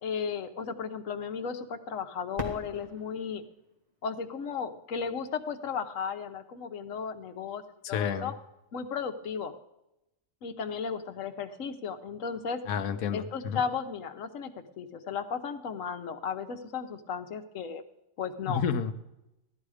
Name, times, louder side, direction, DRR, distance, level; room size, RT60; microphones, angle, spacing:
voice 1, 0.0-3.4 4.0-7.6 7.9-8.3 8.7-9.5 10.4-12.6 13.1-17.8 18.2-18.6, left 6 dB, 70° left, 7 dB, 1.3 m, -35 dB
Fireworks, 2.3-5.1 5.8-5.9 6.6-7.0 8.9-9.0, left 1 dB, 30° right, 2.1 m, -43 dB
voice 2, 7.8-8.3 12.7-13.6 18.5-18.9, left 7 dB, 90° left, 7 dB, 1.2 m, -30 dB
16.0 x 12.0 x 4.9 m, 0.91 s
omnidirectional pair, 1.4 m